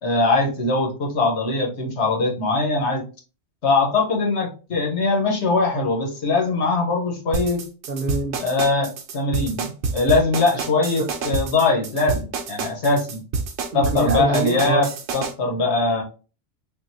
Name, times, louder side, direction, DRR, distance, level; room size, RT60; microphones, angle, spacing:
voice 1, 0.0-3.0 3.6-7.6 8.4-13.2 13.7-16.0, left 3 dB, 80° left, 0 dB, 1.3 m, -21 dB
sound 1, 7.3-15.3, right 4 dB, 90° right, 0.9 m, -27 dB
voice 2, 7.9-8.4 11.0-11.1 13.7-14.9, right 2 dB, 55° right, 4 dB, 0.8 m, -25 dB
3.8 x 2.6 x 2.7 m, 0.34 s
omnidirectional pair, 1.1 m